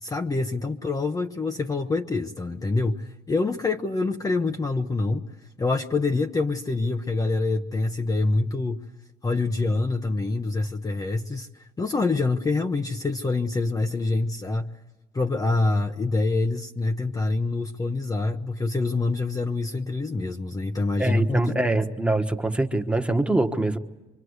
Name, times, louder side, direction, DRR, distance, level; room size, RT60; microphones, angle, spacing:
voice 1, 0.0-8.9 9.2-14.8 15.1-21.5, left 3 dB, 20° left, 0.9 m, -26 dB
voice 2, 21.0-23.8, right 2 dB, 5° right, 1.3 m, -24 dB
25.0 x 25.0 x 8.1 m
cardioid pair, 110°, 17 cm